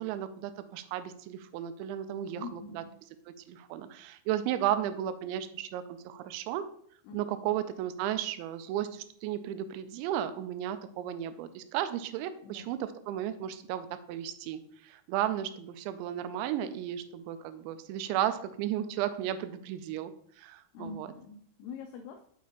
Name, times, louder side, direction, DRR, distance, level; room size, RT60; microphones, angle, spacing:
voice 1, 0.0-2.8 3.3-6.7 7.1-20.1 20.4-21.1, right 11 dB, 85° right, 11 dB, 2.8 m, -34 dB
voice 2, 2.4-2.9 7.1-7.2 7.4-7.6 12.4-12.7 20.7-22.3, left 4 dB, 90° left, 4 dB, 2.3 m, -44 dB
7.3 x 6.0 x 2.9 m, 0.64 s
omnidirectional pair, 5.3 m